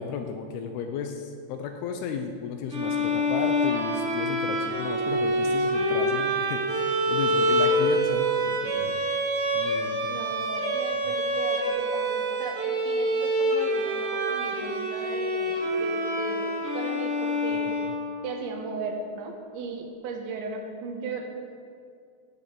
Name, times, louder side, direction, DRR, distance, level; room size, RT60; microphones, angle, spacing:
voice 1, 0.0-9.0 9.5-10.2 11.0-11.1 17.8-17.9, left 6 dB, 75° left, 5 dB, 2.5 m, -34 dB
sound 1, 2.7-18.4, equal, 25° right, 2.0 m, -26 dB
voice 2, 10.1-17.7 18.2-21.2, right 4 dB, 85° right, 1 dB, 3.5 m, -36 dB
11.5 x 9.7 x 8.4 m, 2.3 s
omnidirectional pair, 5.0 m